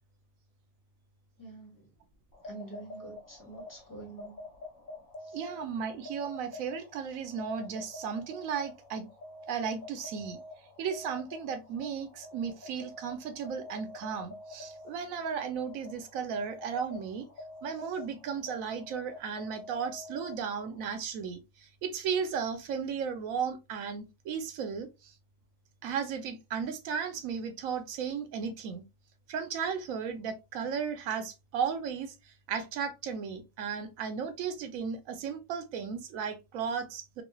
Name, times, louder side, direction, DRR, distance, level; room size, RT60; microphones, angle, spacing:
voice 1, 1.4-1.9 2.4-4.5 5.2-5.4, right 3 dB, 15° left, 1.0 m, -47 dB
sound 1, 2.3-20.8, left 2 dB, 85° left, 1.3 m, -47 dB
voice 2, 5.3-9.1 9.5-10.4 10.8-17.3 17.6-21.4 21.8-24.9 25.8-28.8 29.3-32.1 32.5-37.2, right 6 dB, 90° right, 1.0 m, -35 dB
3.1 x 2.4 x 2.2 m
omnidirectional pair, 1.4 m